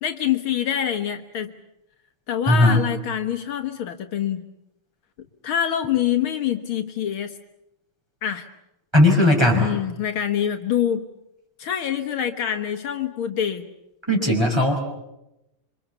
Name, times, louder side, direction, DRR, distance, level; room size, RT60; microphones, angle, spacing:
voice 1, 0.0-1.5 2.3-4.4 5.4-7.3 8.2-8.5 9.6-11.1 11.6-13.7, left 10 dB, 70° left, 7 dB, 2.0 m, -25 dB
voice 2, 2.5-2.8 8.9-9.7 14.1-14.8, left 1 dB, 10° right, 1 dB, 5.5 m, -17 dB
27.0 x 25.0 x 7.1 m, 0.88 s
omnidirectional pair, 2.4 m